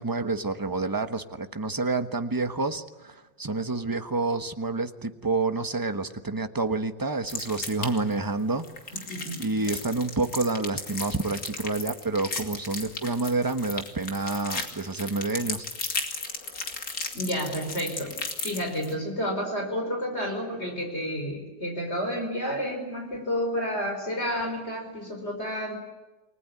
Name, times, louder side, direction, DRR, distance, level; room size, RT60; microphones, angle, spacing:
voice 1, 0.0-15.7, right 3 dB, 15° right, 9 dB, 1.1 m, -29 dB
sound 1, 7.3-8.1 8.6-18.9, left 3 dB, 50° left, 3.1 m, -35 dB
voice 2, 8.9-9.4 9.7-9.8 17.1-25.8, equal, 35° left, 2 dB, 5.4 m, -31 dB
29.0 x 21.0 x 9.7 m, 1.1 s
omnidirectional pair, 1.9 m